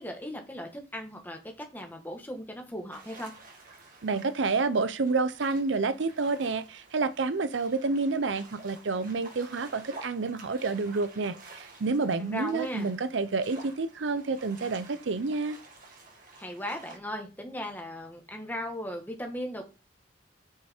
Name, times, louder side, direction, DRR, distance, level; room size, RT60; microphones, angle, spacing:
voice 1, 0.0-3.3 12.2-12.9 16.4-19.7, equal, 10° left, 1.6 m, -37 dB
sound 1, 2.9-17.0, right 3 dB, 50° right, 2.1 m, -51 dB
voice 2, 4.0-15.6, right 3 dB, 80° right, 0.6 m, -29 dB
6.7 x 5.5 x 4.4 m
head